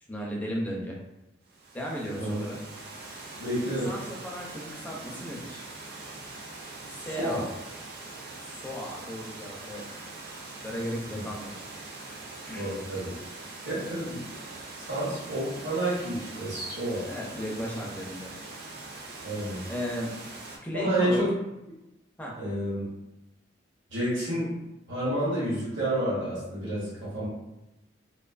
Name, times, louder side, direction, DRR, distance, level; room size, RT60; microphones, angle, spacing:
voice 1, 0.1-1.0 1.7-2.6 3.9-5.6 6.9-7.5 8.4-9.8 10.4-11.6 12.5-12.7 17.1-18.3 19.7-20.1 20.6-21.3 22.2-22.3, equal, 10° left, -3 dB, 0.4 m, -35 dB
Water, 1.4-20.6, right 2 dB, 55° right, 0.5 m, -43 dB
voice 2, 3.4-3.9 7.0-7.5 12.5-13.1 13.6-14.2 14.9-17.1 19.2-19.7 20.7-21.3 22.4-22.8 23.9-24.5 24.9-27.3, right 1 dB, 75° right, -8 dB, 0.9 m, -29 dB
2.5 x 2.2 x 2.3 m, 0.96 s
head